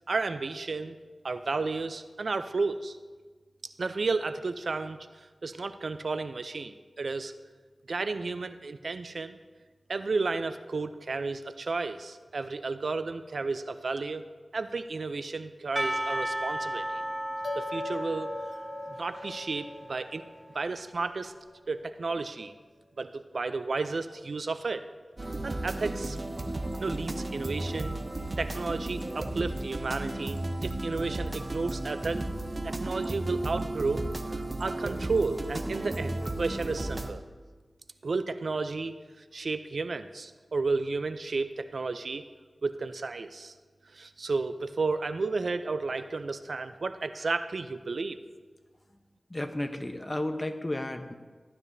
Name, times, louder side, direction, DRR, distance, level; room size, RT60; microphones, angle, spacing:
voice 1, 0.1-1.0 1.2-3.0 3.6-5.1 5.4-7.3 7.9-9.4 9.9-14.2 14.5-17.0 17.5-18.3 19.0-20.2 20.5-21.3 21.7-22.5 23.0-24.8 25.4-26.2 26.8-28.0 28.4-32.3 32.6-37.2 38.0-38.9 39.3-42.2 42.6-43.5 43.9-48.2, right 3 dB, 75° right, 10 dB, 0.5 m, -32 dB
Percussion / Church bell, 15.8-20.5, right 1 dB, 20° right, 0.4 m, -35 dB
sound 1, 17.4-22.1, left 2 dB, 75° left, 1.0 m, -42 dB
sound 2, 25.2-37.1, right 2 dB, 40° right, 0.9 m, -34 dB
voice 2, 49.3-51.1, left 1 dB, 30° left, 6 dB, 0.9 m, -33 dB
14.5 x 12.0 x 2.7 m, 1.4 s
wide cardioid pair, 55°, 0 cm